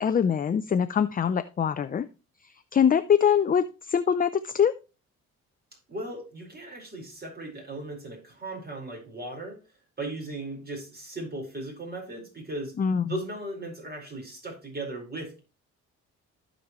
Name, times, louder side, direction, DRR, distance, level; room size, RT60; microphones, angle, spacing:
voice 1, 0.0-2.1 2.7-4.7 12.8-13.0, left 7 dB, 30° left, 11 dB, 0.5 m, -23 dB
voice 2, 5.9-9.6 10.0-12.7 13.1-15.4, right 2 dB, 30° right, 0 dB, 4.7 m, -37 dB
15.0 x 5.3 x 3.1 m, 0.31 s
cardioid pair, 90°, 30 cm